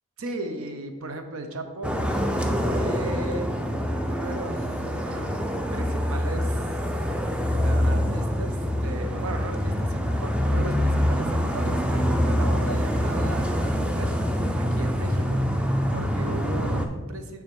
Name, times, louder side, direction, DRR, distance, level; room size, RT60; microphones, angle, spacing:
voice 1, 0.2-2.1 2.6-3.5 4.1-6.8 7.6-17.4, right 2 dB, 75° right, 6 dB, 0.7 m, -37 dB
sound 1, 1.8-16.9, equal, 5° right, 0.4 m, -25 dB
6.4 x 3.5 x 6.0 m, 1.3 s
head